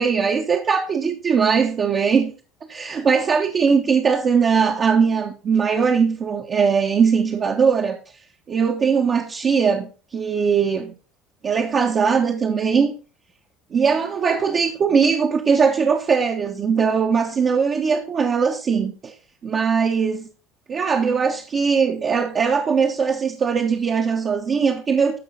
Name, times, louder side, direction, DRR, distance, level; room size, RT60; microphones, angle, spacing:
voice 1, 0.0-2.3 2.7-8.0 8.5-10.9 11.4-12.9 13.7-19.1 19.4-20.3 20.7-25.2, right 6 dB, 40° right, 1.2 m, -20 dB
14.0 x 5.0 x 4.1 m
hypercardioid pair, 70°, 0 cm